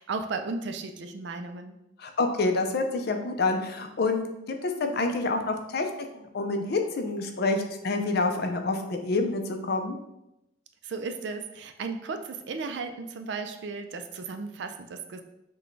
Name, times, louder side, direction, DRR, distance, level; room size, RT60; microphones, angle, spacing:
voice 1, 0.0-1.8 10.8-15.2, right 4 dB, 65° right, 7 dB, 0.4 m, -35 dB
voice 2, 2.0-9.4 9.7-10.0, left 3 dB, 55° left, 5 dB, 0.5 m, -27 dB
6.0 x 2.2 x 3.1 m, 0.87 s
head